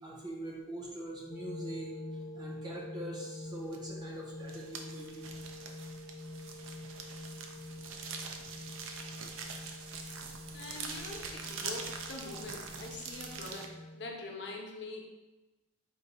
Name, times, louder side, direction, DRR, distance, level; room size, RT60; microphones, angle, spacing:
voice 1, 0.0-1.9 2.3-5.2 6.4-6.5, right 1 dB, 20° right, -2 dB, 0.6 m, -43 dB
sound 1, 1.3-14.1, left 1 dB, 20° left, 0.3 m, -46 dB
sound 2, 3.7-4.0 4.3-13.7, right 5 dB, 85° right, 0.5 m, -44 dB
voice 2, 10.5-15.0, left 2 dB, 55° left, 0 dB, 0.6 m, -44 dB
3.8 x 2.5 x 4.1 m, 1.1 s
head